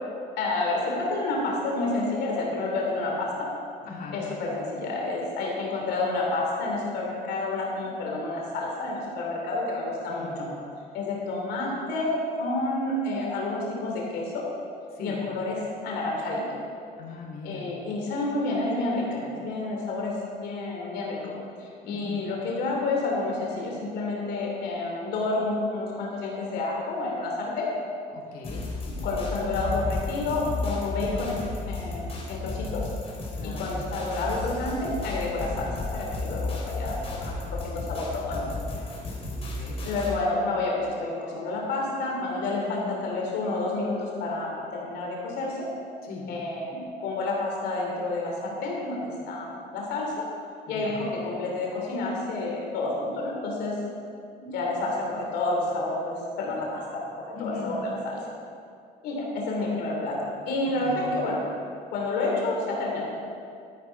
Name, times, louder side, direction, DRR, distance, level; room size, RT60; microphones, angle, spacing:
voice 1, 0.4-3.5 4.1-10.5 10.9-14.4 15.0-16.4 17.4-20.1 20.4-21.3 21.6-27.7 28.9-32.9 33.4-38.4 39.8-45.7 46.3-50.3 50.7-53.7 54.4-58.3 59.0-61.4 61.9-63.0, left 2 dB, 80° left, -2 dB, 2.8 m, -29 dB
voice 2, 3.8-4.2 10.1-10.4 14.9-15.2 17.0-17.6 21.8-22.2 28.1-28.7 30.9-31.2 33.3-33.7 39.2-39.8 42.4-42.9 46.0-46.3 50.7-50.9 57.3-57.7 60.8-61.1, left 4 dB, 60° left, -3 dB, 2.8 m, -40 dB
sound 1, 28.4-40.1, left 2 dB, 35° left, 3.3 m, -33 dB
13.0 x 9.5 x 4.6 m, 2.4 s
cardioid pair, 110°, 17 cm